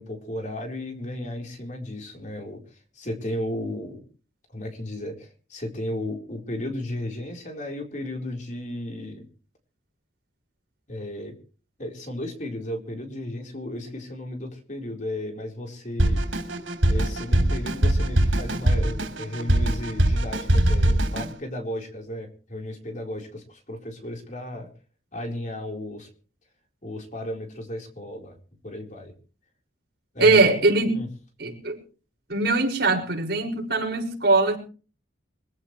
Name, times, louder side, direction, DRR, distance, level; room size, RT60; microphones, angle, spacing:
voice 1, 0.0-2.6 2.9-4.0 4.5-9.3 10.9-11.4 11.8-16.2 16.9-24.7 25.1-26.1 26.8-28.4 28.6-29.1 30.1-30.5 30.9-31.1, left 1 dB, 40° left, 4.3 m, -34 dB
Drum kit, 16.0-21.3, right 1 dB, 90° right, 4.0 m, -22 dB
voice 2, 30.2-31.0 31.4-31.8 32.3-34.6, right 3 dB, 55° right, 6.0 m, -21 dB
24.5 x 15.5 x 3.3 m
head